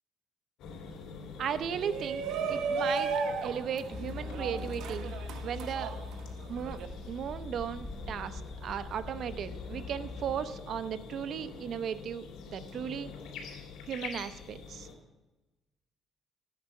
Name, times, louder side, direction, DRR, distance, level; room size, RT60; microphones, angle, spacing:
sound 1, 0.6-14.9, left 5 dB, 80° left, 3.1 m, -46 dB
voice 1, 1.4-3.1 3.4-5.1 5.4-5.9 6.5-6.8 7.1-13.1 13.9-14.9, right 8 dB, 60° right, 12 dB, 0.7 m, -36 dB
Shout, 1.7-6.9, right 5 dB, 75° right, 1.1 m, -35 dB
sound 2, 3.9-10.3, left 3 dB, 5° left, 1.6 m, -43 dB
13.0 x 9.3 x 5.3 m, 1.1 s
cardioid pair, 125°, 0 cm